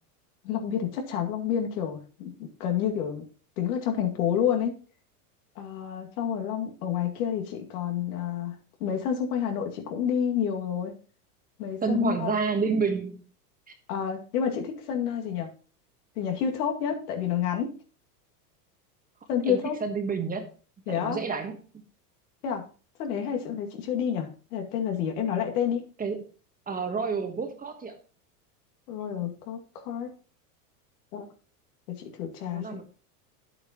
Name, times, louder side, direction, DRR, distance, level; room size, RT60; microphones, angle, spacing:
voice 1, 0.4-3.3 3.6-4.7 5.6-10.9 11.6-12.3 13.9-15.5 16.2-17.8 19.3-19.8 20.9-21.2 22.4-22.7 23.0-25.8 28.9-30.1 31.1-31.3 31.9-32.8, left 8 dB, 70° left, 3 dB, 2.3 m, -29 dB
voice 2, 11.8-13.2 19.5-20.5 20.9-21.6 26.0-26.2 26.7-28.0 32.4-32.8, right 5 dB, 20° right, 6 dB, 1.3 m, -29 dB
10.0 x 8.5 x 2.9 m, 0.37 s
supercardioid pair, 120°, 46 cm